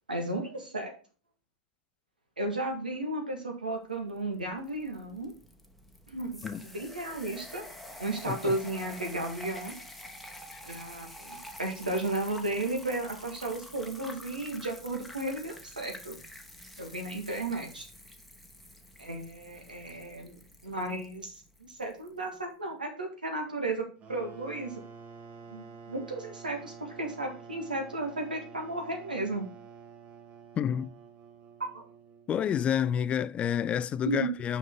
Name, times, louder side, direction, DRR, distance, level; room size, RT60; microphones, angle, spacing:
voice 1, 0.1-0.9 2.4-5.3 6.1-7.6 8.0-9.7 10.6-16.2 16.8-17.9 19.0-20.4 20.6-24.7 25.5-29.5 31.6-31.8 34.1-34.3, right 2 dB, 85° right, 2.1 m, -34 dB
sound 1, 4.1-22.2, left 1 dB, ahead, 1.1 m, -48 dB
voice 2, 8.3-8.6 10.5-10.6 30.6-30.9 32.3-34.6, left 9 dB, 25° left, 0.3 m, -29 dB
sound 2, 24.0-32.5, right 5 dB, 30° right, 1.4 m, -49 dB
6.3 x 5.5 x 3.8 m
figure-of-eight pair, 95°, 4 cm